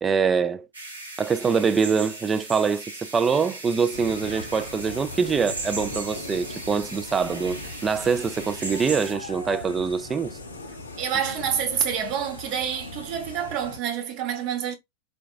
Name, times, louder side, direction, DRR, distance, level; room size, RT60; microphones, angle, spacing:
voice 1, 0.0-0.7 1.2-10.4, right 5 dB, 20° right, 0.3 m, -24 dB
sound 1, 0.7-9.1, right 2 dB, 80° right, 1.0 m, -38 dB
sound 2, 3.9-13.8, left 2 dB, 75° left, 0.5 m, -39 dB
voice 2, 11.0-14.7, right 8 dB, 45° right, 0.8 m, -27 dB
3.8 x 2.2 x 2.3 m
figure-of-eight pair, 90°, 0 cm